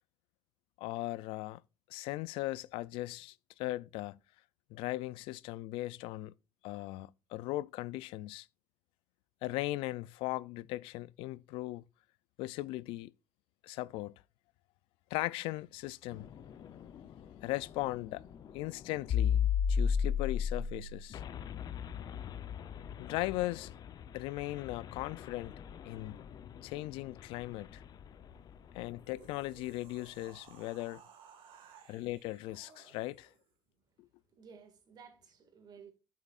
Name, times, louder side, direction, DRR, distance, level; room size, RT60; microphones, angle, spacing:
voice 1, 0.8-1.6 1.9-4.2 4.7-6.3 6.6-8.5 9.4-11.8 12.4-13.1 13.6-14.1 15.1-16.3 17.4-18.2 18.5-21.2 23.0-23.7 24.1-25.5 25.9-26.2 26.6-27.8 28.7-31.0 31.9-33.3, left 18 dB, 90° left, 0.3 m, -38 dB
sound 1, 16.1-28.8, left 7 dB, 50° left, 0.7 m, -36 dB
sound 2, 28.9-33.5, right 7 dB, 70° right, 1.8 m, -59 dB
voice 2, 34.3-35.9, right 6 dB, 50° right, 1.9 m, -55 dB
9.0 x 7.4 x 2.4 m
cardioid pair, 120°, 9 cm